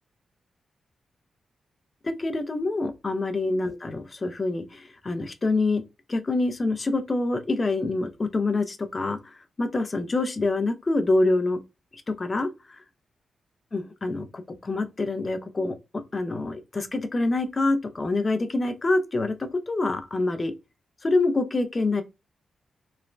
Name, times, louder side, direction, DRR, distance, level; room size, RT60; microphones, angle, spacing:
voice 1, 2.0-5.8 6.1-11.6 11.9-12.8 13.7-15.8 16.1-20.5 21.0-22.0, left 2 dB, 35° left, 0.5 m, -26 dB
3.1 x 2.1 x 2.5 m
cardioid pair, 80°, 0 cm